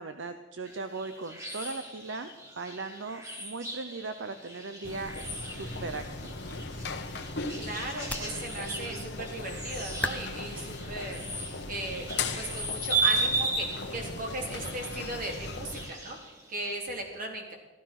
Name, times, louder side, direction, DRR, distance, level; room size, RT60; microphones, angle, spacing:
voice 1, 0.0-2.3 2.6-6.5, right 3 dB, 70° right, 9 dB, 0.8 m, -38 dB
sound 1, 0.6-16.8, right 3 dB, 20° right, 3.3 m, -36 dB
sound 2, 4.8-15.9, left 3 dB, 60° left, 1.3 m, -38 dB
voice 2, 7.6-12.1 12.3-17.5, right 2 dB, 45° right, 1 dB, 3.2 m, -37 dB
sound 3, 7.7-13.4, left 1 dB, 10° left, 0.7 m, -42 dB
15.0 x 13.0 x 5.9 m, 1.2 s
head